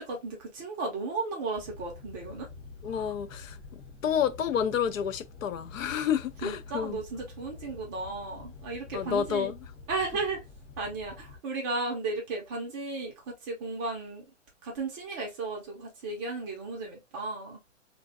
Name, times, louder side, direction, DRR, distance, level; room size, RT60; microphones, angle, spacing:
voice 1, 0.0-2.5 2.9-3.1 6.0-6.1 6.4-9.5 9.9-10.4 10.8-14.2 14.6-17.6, right 3 dB, 15° right, 0.4 m, -35 dB
sound 1, 1.5-11.4, left 4 dB, 50° left, 0.9 m, -47 dB
voice 2, 2.8-3.6 4.0-7.0 8.9-9.6, left 8 dB, 85° left, 0.6 m, -29 dB
2.6 x 2.2 x 2.5 m
hypercardioid pair, 145°, 38 cm